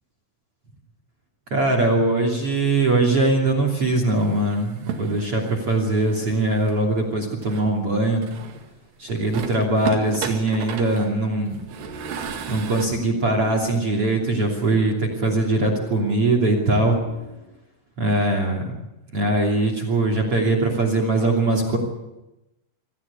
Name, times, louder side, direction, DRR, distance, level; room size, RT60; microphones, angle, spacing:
voice 1, 1.5-8.3 9.0-11.6 12.5-17.0 18.0-18.8 19.1-21.8, right 2 dB, 35° right, 4 dB, 3.2 m, -21 dB
sound 1, 4.2-6.8 7.4-8.7 9.1-12.9, right 7 dB, 65° right, 3.9 m, -35 dB
sound 2, 9.0-17.5, right 1 dB, 30° left, 6.5 m, -43 dB
26.0 x 15.0 x 8.5 m, 0.99 s
omnidirectional pair, 5.4 m